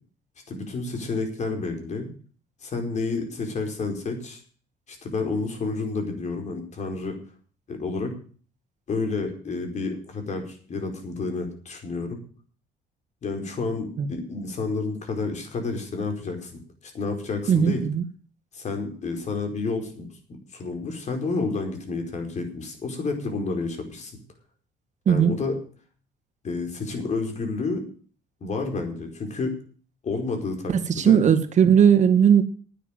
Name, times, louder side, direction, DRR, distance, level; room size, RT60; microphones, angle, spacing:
voice 1, 0.5-2.1 2.6-4.4 4.9-7.2 7.7-8.1 8.9-12.2 13.2-17.8 18.5-24.2 25.1-25.6 26.4-27.8 28.4-29.6 30.0-31.2, left 3 dB, 45° left, 4.6 m, -30 dB
voice 2, 17.5-18.0 25.1-25.4 30.7-32.4, right 8 dB, 45° right, 1.9 m, -18 dB
10.0 x 9.4 x 9.0 m
cardioid pair, 110°, 17 cm